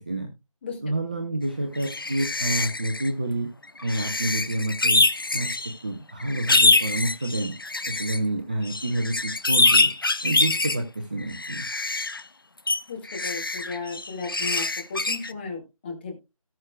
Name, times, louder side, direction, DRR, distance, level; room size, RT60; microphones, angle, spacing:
voice 1, 0.8-3.5 3.8-5.0 5.3-5.5 5.8-7.5 7.9-9.9 10.2-11.6, right 1 dB, 15° right, 3 dB, 0.6 m, -28 dB
sound 1, 1.8-3.1 3.8-5.7 6.2-8.2 8.6-10.8 11.2-12.2 12.7-12.8 13.1-15.3, left 3 dB, 40° left, 0.5 m, -24 dB
voice 2, 12.9-14.6 14.9-16.2, left 4 dB, 20° left, 0 dB, 2.2 m, -34 dB
18.0 x 6.4 x 2.3 m, 0.25 s
figure-of-eight pair, 160°, 18 cm